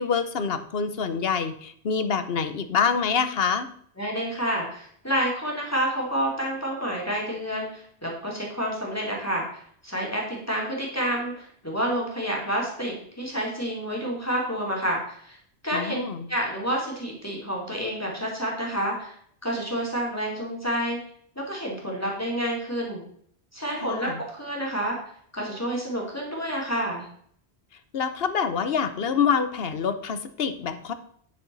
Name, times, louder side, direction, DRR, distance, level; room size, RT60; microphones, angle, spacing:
voice 1, 0.0-3.7 15.7-16.3 23.8-24.2 27.9-30.9, left 6 dB, 65° left, 11 dB, 1.0 m, -26 dB
voice 2, 4.0-9.4 9.8-15.4 15.6-16.0 16.3-19.1 19.4-21.0 21.4-23.0 23.5-25.0 25.3-27.1, equal, 15° left, -2 dB, 2.7 m, -29 dB
10.0 x 7.0 x 4.0 m, 0.63 s
omnidirectional pair, 1.1 m